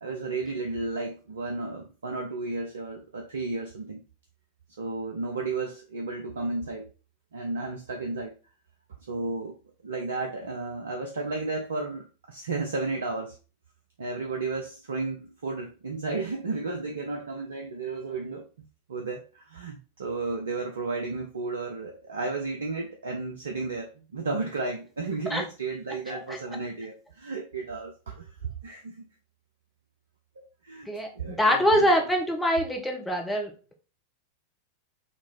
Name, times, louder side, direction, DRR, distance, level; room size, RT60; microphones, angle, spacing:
voice 1, 0.0-4.0 4.8-6.9 7.3-8.3 9.1-9.6 9.8-13.4 14.0-18.5 18.9-29.1 30.4-31.9, right 3 dB, 70° right, 3 dB, 0.6 m, -33 dB
voice 2, 26.1-26.4 30.9-33.5, equal, 5° left, 1 dB, 1.1 m, -24 dB
4.4 x 2.9 x 4.2 m, 0.34 s
figure-of-eight pair, 90°, 0 cm